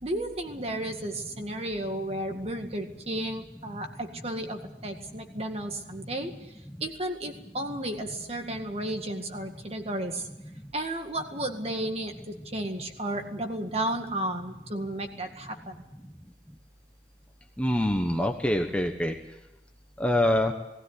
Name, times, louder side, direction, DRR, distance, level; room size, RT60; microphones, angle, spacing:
voice 1, 0.0-6.5 6.8-10.3 10.7-15.8, right 1 dB, 35° right, 5 dB, 2.0 m, -33 dB
voice 2, 17.6-19.1 20.0-20.5, left 1 dB, 5° left, 3 dB, 1.1 m, -25 dB
19.0 x 16.5 x 9.9 m, 0.96 s
head